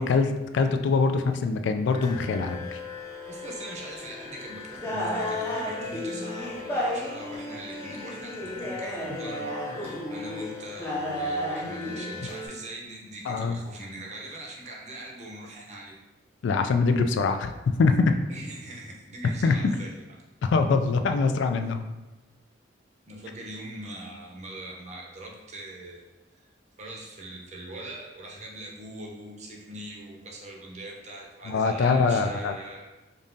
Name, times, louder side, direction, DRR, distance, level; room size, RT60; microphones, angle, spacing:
voice 1, 0.0-2.8 13.3-13.6 16.4-18.1 19.4-19.5 20.4-21.8 31.5-32.6, left 4 dB, 70° left, 7 dB, 0.3 m, -23 dB
Carnatic varnam by Prasanna in Saveri raaga, 1.9-12.5, left 1 dB, 10° left, 0.5 m, -33 dB
voice 2, 3.3-16.0 18.3-20.0 21.6-21.7 23.1-26.5 26.8-32.8, right 1 dB, 35° right, -1 dB, 0.7 m, -42 dB
5.3 x 2.5 x 2.6 m, 1.1 s
head